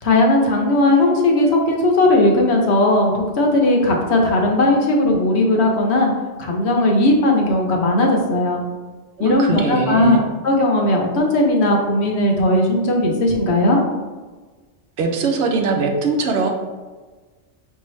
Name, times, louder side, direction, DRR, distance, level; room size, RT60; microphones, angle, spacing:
voice 1, 0.0-6.1 6.4-8.6 9.2-10.2 10.4-13.8, left 1 dB, 65° left, 1 dB, 1.0 m, -17 dB
voice 2, 9.2-10.2 15.0-16.5, right 3 dB, 70° right, 3 dB, 0.9 m, -21 dB
5.5 x 2.7 x 3.1 m, 1.3 s
omnidirectional pair, 1.3 m